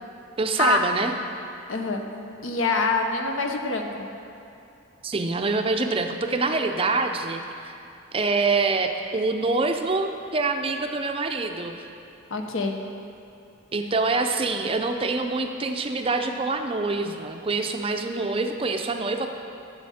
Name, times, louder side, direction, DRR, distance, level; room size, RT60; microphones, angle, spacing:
voice 1, 0.4-1.1 5.0-7.8 8.1-11.8 13.7-19.3, right 3 dB, 25° right, 5 dB, 0.5 m, -25 dB
voice 2, 1.7-2.0 2.4-3.9 12.3-12.8, left 3 dB, 65° left, 3 dB, 0.8 m, -24 dB
13.0 x 7.2 x 4.2 m, 2.7 s
head